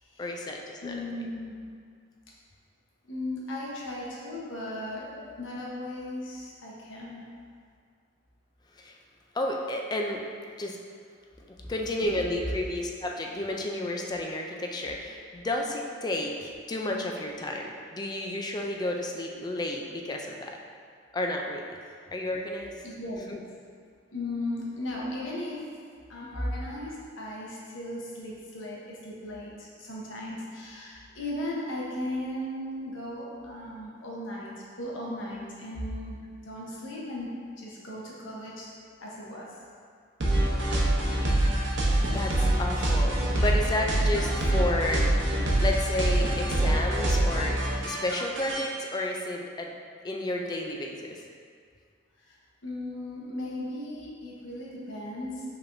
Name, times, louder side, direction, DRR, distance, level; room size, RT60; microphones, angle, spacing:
voice 1, 0.2-1.0 8.8-8.9 9.3-10.2 10.6-10.8 11.5-20.6 21.1-21.8 22.1-22.7 23.3-23.4 40.4-41.0 42.1-45.1 45.6-49.7 50.0-51.2, left 1 dB, 20° left, 1 dB, 0.3 m, -32 dB
voice 2, 0.8-1.6 3.1-7.2 22.8-23.4 24.1-25.6 26.1-34.5 34.8-37.3 37.6-38.7 39.0-39.5 52.3-52.4 52.6-55.5, left 1 dB, 85° left, -5 dB, 1.0 m, -36 dB
sound 1, 40.2-48.6, right 1 dB, 70° right, 0.8 m, -25 dB
5.5 x 3.4 x 2.6 m, 2.1 s
head